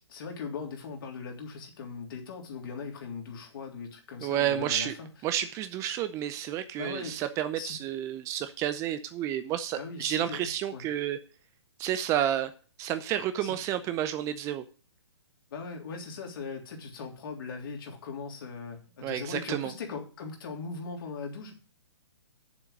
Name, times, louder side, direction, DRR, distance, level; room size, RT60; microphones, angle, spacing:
voice 1, 0.0-5.1 6.8-7.2 7.6-7.8 9.8-10.8 13.4-13.5 15.5-21.5, left 5 dB, 50° left, 1 dB, 3.3 m, -39 dB
voice 2, 4.2-4.9 5.2-11.2 11.8-12.5 12.8-14.6 19.0-19.7, right 11 dB, 20° right, 11 dB, 0.6 m, -30 dB
8.1 x 7.3 x 6.6 m, 0.37 s
figure-of-eight pair, 130°, 14 cm